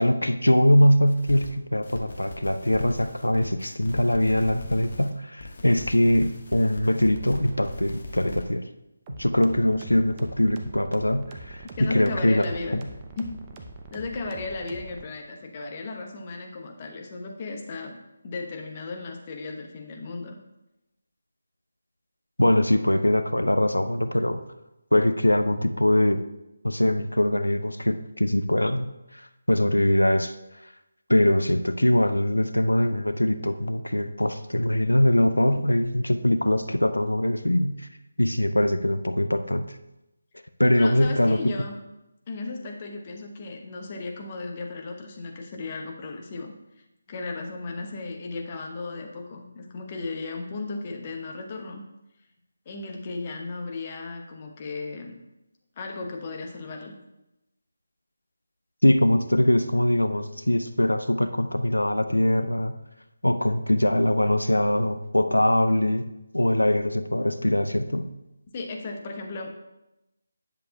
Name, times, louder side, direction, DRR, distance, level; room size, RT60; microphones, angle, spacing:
voice 1, 0.0-8.6 9.1-12.4 12.7-12.9 22.4-24.4 24.9-26.2 26.6-30.3 31.1-37.9 38.2-39.7 40.6-41.5 58.8-62.8 63.2-68.1, left 1 dB, 80° left, 9 dB, 0.5 m, -22 dB
sound 1, 1.1-1.5 1.8-5.1 5.4-8.4, left 3 dB, 50° left, 1.3 m, -40 dB
sound 2, 9.1-15.0, right 2 dB, 20° right, 0.6 m, -43 dB
voice 2, 11.8-12.8 13.2-13.4 13.9-20.4 40.7-41.8 42.3-46.5 47.1-51.8 52.7-55.2 55.8-57.0 68.5-69.5, left 3 dB, 30° left, 2 dB, 1.0 m, -35 dB
10.5 x 6.5 x 2.3 m, 0.92 s
figure-of-eight pair, 155°, 0 cm